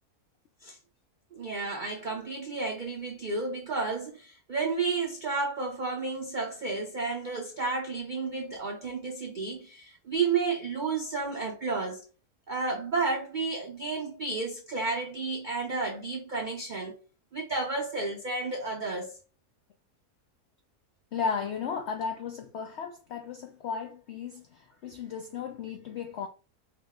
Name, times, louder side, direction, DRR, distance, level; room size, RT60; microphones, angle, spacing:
voice 1, 1.3-12.0 12.5-16.9 17.3-19.1, right 4 dB, 75° right, 0.4 m, -32 dB
voice 2, 21.1-26.3, left 6 dB, 80° left, 0.6 m, -35 dB
4.8 x 2.0 x 3.6 m
omnidirectional pair, 1.7 m